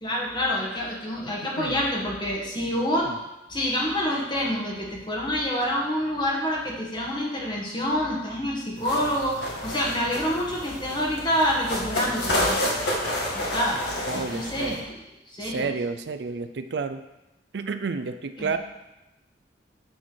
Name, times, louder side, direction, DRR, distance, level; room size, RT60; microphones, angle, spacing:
voice 1, 0.0-3.1 3.5-12.6 13.3-13.8 14.1-15.7 18.4-18.6, equal, 25° left, -2 dB, 1.6 m, -27 dB
sound 1, 8.8-14.8, left 1 dB, 70° left, 1.9 m, -30 dB
voice 2, 14.1-14.8 15.4-17.0 17.5-18.6, right 4 dB, 65° right, 9 dB, 0.5 m, -30 dB
8.4 x 4.4 x 6.2 m, 0.98 s
head